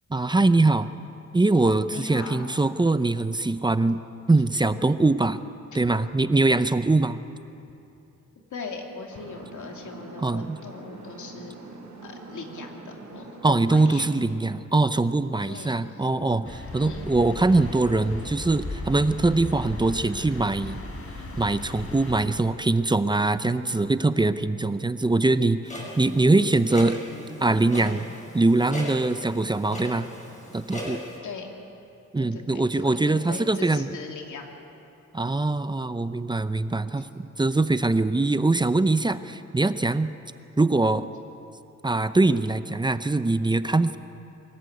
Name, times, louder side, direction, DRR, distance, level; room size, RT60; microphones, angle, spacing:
voice 1, 0.1-0.9 1.3-4.0 4.3-5.4 5.7-7.2 10.2-10.6 13.4-20.8 21.4-27.0 27.4-28.1 28.3-30.1 30.5-31.0 32.1-33.9 35.1-40.1 40.6-41.1 41.8-44.0, right 2 dB, 15° right, 12 dB, 0.6 m, -22 dB
voice 2, 1.9-2.4 8.5-11.6 12.0-14.2 15.4-15.8 16.8-17.1 31.2-31.5 32.2-34.5, left 4 dB, 75° left, 2 dB, 2.8 m, -39 dB
sound 1, 9.1-14.2, right 3 dB, 65° right, 4.4 m, -44 dB
sound 2, 16.4-22.3, left 2 dB, 50° left, 3.7 m, -36 dB
Clock, 25.6-31.2, left 1 dB, 25° left, 5.7 m, -39 dB
23.5 x 14.5 x 9.4 m, 2.8 s
cardioid pair, 105°, 30 cm